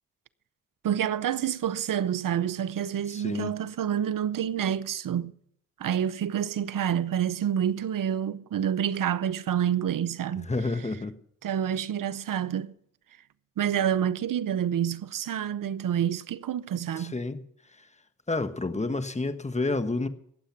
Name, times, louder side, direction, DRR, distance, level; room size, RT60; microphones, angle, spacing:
voice 1, 0.8-5.3 5.8-10.5 11.4-12.7 13.6-17.2, right 9 dB, 70° right, 0.7 m, -28 dB
voice 2, 3.1-3.6 10.5-11.2 16.9-17.4 17.8-17.9 18.3-20.1, left 3 dB, 20° left, 1.4 m, -29 dB
19.5 x 7.7 x 5.9 m
supercardioid pair, 40°, 34 cm